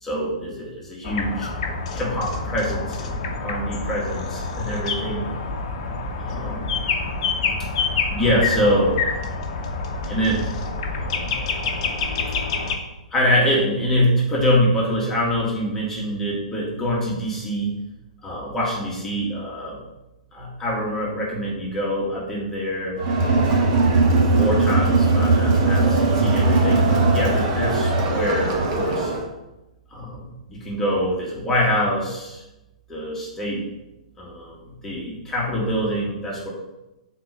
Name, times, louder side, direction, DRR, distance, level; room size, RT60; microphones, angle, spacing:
voice 1, 0.0-1.5 1.9-5.2 6.2-6.7 8.1-9.0 10.1-10.5 10.9-11.4 13.1-17.7 18.2-19.8 20.3-23.0 24.4-29.1 29.9-32.4 32.9-33.6 34.2-34.6 34.8-36.5, equal, 10° left, -5 dB, 2.2 m, -25 dB
sound 1, 1.0-12.8, left 4 dB, 45° left, 1.0 m, -27 dB
Crowd, 23.0-29.3, right 3 dB, 40° right, 1.4 m, -19 dB
5.8 x 4.5 x 5.3 m, 0.97 s
figure-of-eight pair, 115°, 4 cm